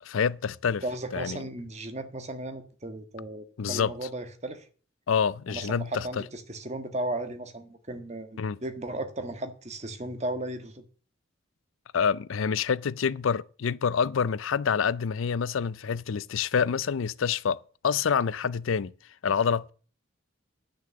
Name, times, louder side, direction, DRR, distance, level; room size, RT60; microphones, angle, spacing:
voice 1, 0.0-0.8 1.1-1.4 3.6-3.9 5.1-6.2 8.4-8.6 11.9-17.6 17.8-18.9 19.2-19.7, left 6 dB, 80° left, 0.5 m, -27 dB
voice 2, 0.8-4.7 5.5-10.9, right 1 dB, 35° right, 1.5 m, -35 dB
10.5 x 6.6 x 7.7 m
head